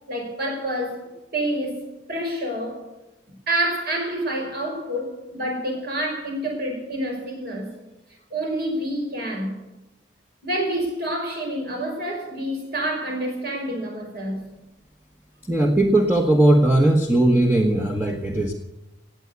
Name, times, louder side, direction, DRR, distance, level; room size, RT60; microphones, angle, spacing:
voice 1, 0.1-1.0 1.3-1.8 2.1-2.8 3.5-7.7 8.3-9.6 10.4-14.4, right 1 dB, 55° right, 5.4 m, -27 dB
voice 2, 15.4-18.5, right 1 dB, 10° right, 1.2 m, -18 dB
18.5 x 8.3 x 8.2 m
head